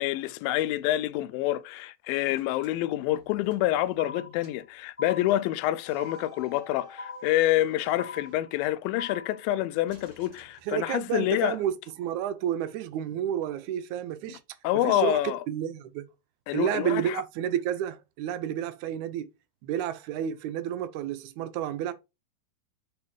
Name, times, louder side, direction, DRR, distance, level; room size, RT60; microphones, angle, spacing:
voice 1, 0.0-11.6 14.3-14.4 14.6-15.4 16.5-17.2, left 14 dB, 80° left, 2.3 m, -27 dB
sound 1, 2.3-4.1 4.4-4.7 5.7-9.0 9.8-11.3, right 1 dB, 50° right, 1.2 m, -53 dB
sound 2, 4.0-4.6 5.0-5.6 6.0-6.6 7.0-7.6 8.0-8.6 9.0-9.6, left 3 dB, 5° left, 1.6 m, -42 dB
voice 2, 10.7-14.4 14.8-16.0 16.5-19.3 19.6-21.9, right 10 dB, 80° right, 1.7 m, -30 dB
5.5 x 4.2 x 4.7 m
omnidirectional pair, 4.2 m